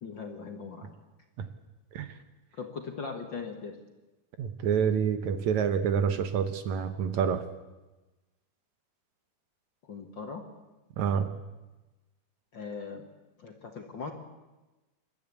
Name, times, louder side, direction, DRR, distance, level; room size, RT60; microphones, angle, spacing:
voice 1, 0.0-1.0 2.5-3.8 9.8-10.4 12.5-13.0 13.4-14.1, left 5 dB, 45° left, 3 dB, 1.7 m, -39 dB
voice 2, 4.4-7.4 11.0-11.3, right 7 dB, 70° right, 10 dB, 2.2 m, -27 dB
28.0 x 12.5 x 8.3 m, 1.1 s
omnidirectional pair, 3.8 m